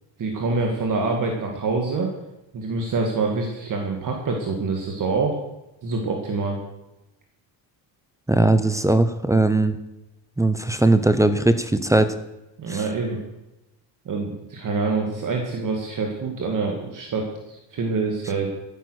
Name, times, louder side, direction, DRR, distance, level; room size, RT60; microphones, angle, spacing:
voice 1, 0.2-2.1 2.5-5.4 5.8-6.6 12.6-13.2 14.1-18.5, right 3 dB, 45° right, 1 dB, 2.2 m, -26 dB
voice 2, 8.3-9.8 10.4-12.1 12.7-12.8, right 2 dB, 5° right, 9 dB, 0.7 m, -19 dB
13.5 x 9.5 x 6.5 m, 0.94 s
cardioid pair, 135°, 45 cm